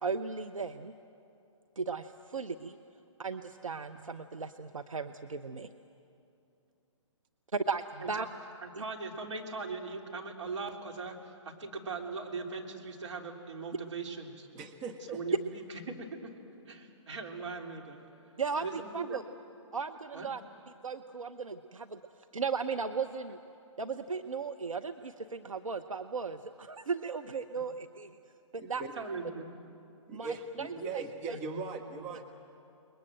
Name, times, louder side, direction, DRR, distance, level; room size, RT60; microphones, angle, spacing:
voice 1, 0.0-0.9 1.8-2.8 3.2-5.7 7.5-8.3 8.8-8.9 18.4-19.2 19.7-20.4 20.8-22.0 22.3-23.4 23.8-28.2 28.5-28.8 30.1-30.7 30.9-31.0 31.3-31.4 32.1-32.2, right 5 dB, 85° right, 8 dB, 0.9 m, -36 dB
voice 2, 8.6-14.5 15.1-16.3 16.7-18.0 18.6-19.2 20.1-20.3 29.0-29.5 31.3-31.7 32.0-32.1, right 4 dB, 65° right, 1 dB, 3.5 m, -40 dB
voice 3, 14.5-15.2 28.6-28.9 30.1-32.3, right 4 dB, 25° right, 4 dB, 1.5 m, -39 dB
29.0 x 21.5 x 7.7 m, 2.7 s
figure-of-eight pair, 135°, 17 cm